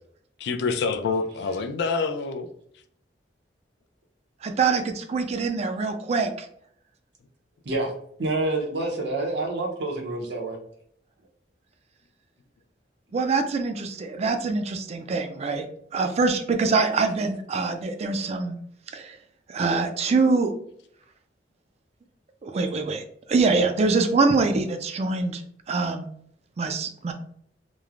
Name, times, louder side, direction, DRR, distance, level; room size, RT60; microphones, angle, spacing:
voice 1, 0.4-2.5, left 4 dB, 70° left, 7 dB, 0.3 m, -26 dB
voice 2, 4.4-6.5 13.1-15.6 15.9-18.6 18.9-19.2 19.5-20.5 22.4-23.0 23.3-25.4 25.7-26.0 26.6-27.1, right 4 dB, 40° right, 6 dB, 0.3 m, -24 dB
voice 3, 8.2-10.6, right 2 dB, 70° right, 1 dB, 0.7 m, -27 dB
3.0 x 2.0 x 2.4 m, 0.66 s
head